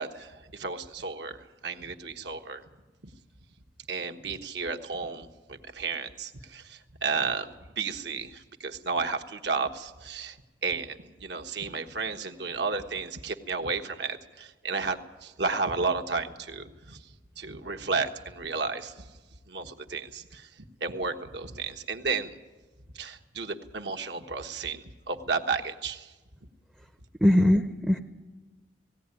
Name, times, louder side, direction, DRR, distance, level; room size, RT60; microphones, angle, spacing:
voice 1, 0.0-2.6 3.9-7.5 7.8-10.4 10.6-17.1 17.4-19.1 19.5-20.5 20.8-22.3 22.9-26.1, right 4 dB, 70° right, 5 dB, 1.3 m, -33 dB
voice 2, 27.2-28.0, left 1 dB, 5° right, 6 dB, 0.6 m, -21 dB
17.5 x 17.0 x 9.8 m, 1.2 s
head